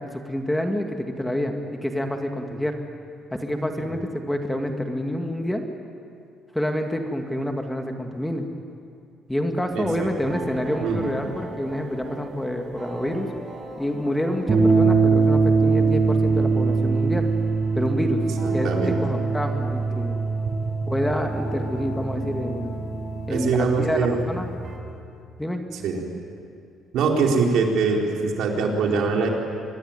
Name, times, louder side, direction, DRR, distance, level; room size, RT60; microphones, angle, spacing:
voice 1, 0.0-2.8 3.3-5.6 6.5-8.5 9.3-13.3 13.8-17.3 17.7-18.2 18.5-20.1 20.9-22.9 23.3-24.5 25.4-25.6, equal, 5° left, 4 dB, 2.1 m, -27 dB
voice 2, 9.7-10.1 10.8-11.0 18.4-19.0 23.3-24.2 25.7-26.0 26.9-29.3, right 4 dB, 75° right, 0 dB, 4.4 m, -23 dB
sound 1, 9.9-24.8, right 4 dB, 35° right, 6.0 m, -24 dB
25.5 x 21.0 x 9.1 m, 2.4 s
cardioid pair, 120°, 0 cm